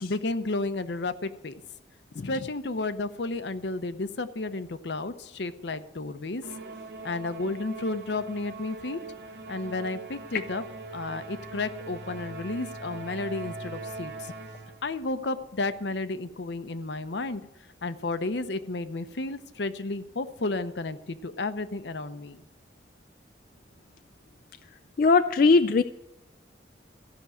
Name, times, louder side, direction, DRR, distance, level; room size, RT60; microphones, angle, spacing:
voice 1, 0.0-1.6 2.2-6.4 7.0-9.0 9.5-10.6 10.9-14.1 14.8-17.4 17.8-22.4, left 2 dB, 70° left, 11 dB, 0.8 m, -32 dB
Musical instrument, 6.4-14.9, right 3 dB, 70° right, 1.9 m, -41 dB
voice 2, 25.0-25.8, left 4 dB, 50° left, 8 dB, 0.3 m, -20 dB
14.5 x 6.1 x 9.2 m, 0.94 s
head